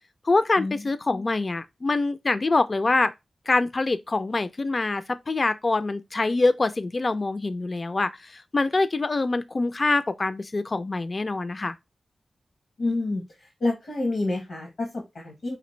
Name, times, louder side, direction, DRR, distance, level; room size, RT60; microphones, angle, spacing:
voice 1, 0.2-3.1 3.5-11.7, left 3 dB, 40° left, 0.3 m, -25 dB
voice 2, 12.8-15.6, left 2 dB, 80° left, 1.0 m, -29 dB
5.0 x 2.5 x 3.1 m
wide cardioid pair, 100°, 0 cm